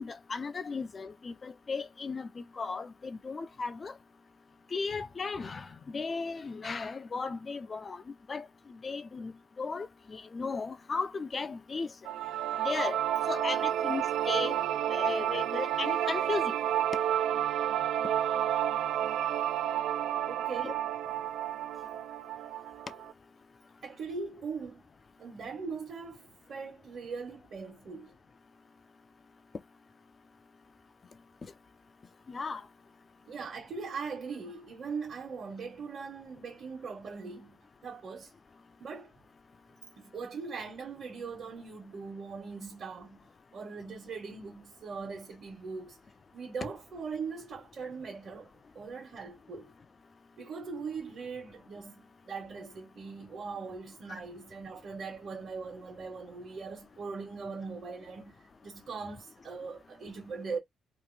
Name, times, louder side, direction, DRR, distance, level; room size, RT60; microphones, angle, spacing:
voice 1, 0.0-3.9 4.7-8.0 8.3-11.9 12.6-13.0 13.3-14.6 14.9-16.6 20.6-20.7 31.4-31.5 32.3-32.6, left 4 dB, 35° left, 0.5 m, -36 dB
sound 1, 12.0-23.1, right 11 dB, 80° right, 0.4 m, -30 dB
voice 2, 20.2-20.8 23.8-24.8 25.2-28.1 33.3-38.3 38.8-39.1 40.0-43.2 43.5-46.0 46.3-48.5 48.7-49.7 50.4-60.6, right 5 dB, 55° right, 1.4 m, -40 dB
3.0 x 2.5 x 3.3 m
cardioid pair, 90°, 0 cm